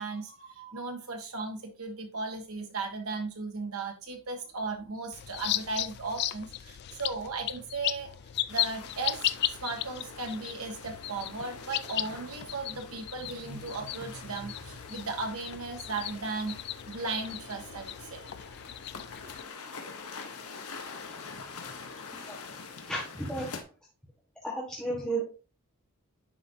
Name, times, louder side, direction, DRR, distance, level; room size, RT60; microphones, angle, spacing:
voice 1, 0.0-18.5, right 3 dB, 70° right, 3 dB, 1.5 m, -36 dB
sound 1, 5.1-19.4, left 13 dB, 45° left, 0.3 m, -36 dB
sound 2, 8.5-23.6, left 4 dB, 75° left, 1.1 m, -45 dB
voice 2, 22.9-23.5 24.4-25.2, right 2 dB, 5° left, -6 dB, 1.4 m, -33 dB
10.0 x 4.3 x 2.7 m, 0.35 s
head